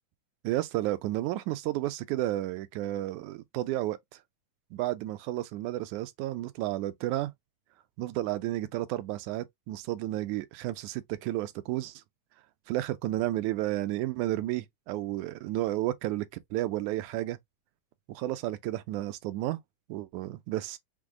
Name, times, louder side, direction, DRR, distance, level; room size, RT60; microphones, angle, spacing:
voice 1, 0.4-4.0 4.7-7.3 8.0-12.0 12.7-16.3 16.5-17.4 18.1-19.6 19.9-20.8, right 15 dB, 80° right, 2.0 m, -32 dB
6.1 x 2.1 x 3.6 m
omnidirectional pair, 3.4 m